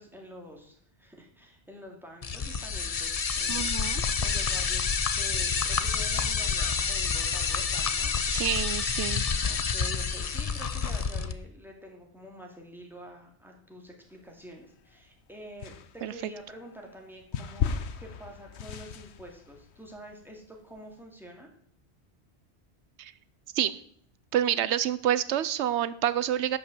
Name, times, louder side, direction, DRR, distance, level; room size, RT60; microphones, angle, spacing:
voice 1, 0.0-3.7 4.2-8.1 9.4-21.5, equal, ahead, 0 dB, 2.4 m, -47 dB
sound 1, 2.2-11.3, left 5 dB, 40° left, 0.7 m, -28 dB
voice 2, 3.5-4.0 8.3-9.2 16.0-16.1 23.0-23.1 23.5-23.8 24.3-26.6, right 11 dB, 85° right, 16 dB, 0.9 m, -28 dB
sound 2, 14.2-15.0 15.6-20.9, left 7 dB, 75° left, 1.0 m, -36 dB
12.0 x 5.9 x 7.7 m, 0.62 s
omnidirectional pair, 1.1 m